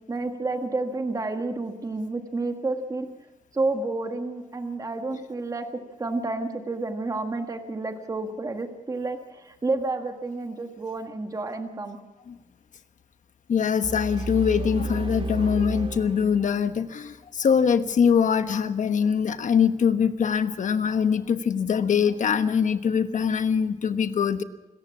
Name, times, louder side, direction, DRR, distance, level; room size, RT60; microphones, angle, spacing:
voice 1, 0.0-3.1 3.5-5.6 6.0-12.0, right 3 dB, 25° right, 5 dB, 1.6 m, -30 dB
voice 2, 13.5-24.4, left 7 dB, 70° left, 9 dB, 1.2 m, -23 dB
sound 1, 13.8-16.9, right 2 dB, 45° right, 2.2 m, -32 dB
25.5 x 14.5 x 7.3 m, 1.1 s
wide cardioid pair, 145°, 13 cm